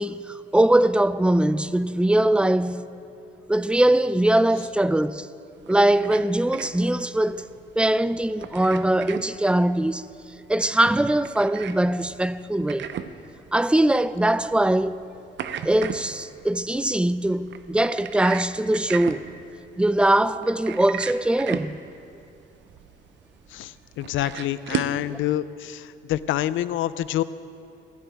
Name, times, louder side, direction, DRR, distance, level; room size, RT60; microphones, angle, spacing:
voice 1, 0.0-2.9 3.5-5.3 5.7-7.5 7.8-10.0 10.5-12.9 13.5-15.0 15.6-19.2 19.8-21.8 25.1-25.2, right 1 dB, 5° right, 0.4 m, -21 dB
sound 1, 5.5-25.0, right 9 dB, 65° right, 0.7 m, -37 dB
voice 2, 23.5-27.2, left 13 dB, 80° left, 0.5 m, -27 dB
16.5 x 16.5 x 3.5 m
cardioid pair, 90°, 20 cm